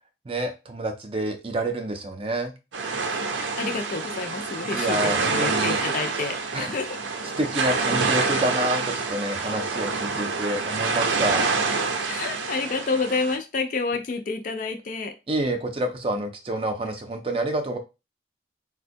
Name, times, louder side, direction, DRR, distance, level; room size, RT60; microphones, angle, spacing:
voice 1, 0.2-2.5 4.7-5.8 6.5-6.7 7.4-11.5 15.3-17.8, right 1 dB, 30° right, 6 dB, 0.5 m, -28 dB
sound 1, 2.7-13.4, right 4 dB, 90° right, 0.6 m, -27 dB
voice 2, 3.6-7.0 12.0-15.1, left 4 dB, 45° left, 7 dB, 0.4 m, -29 dB
4.2 x 2.2 x 2.6 m, 0.27 s
head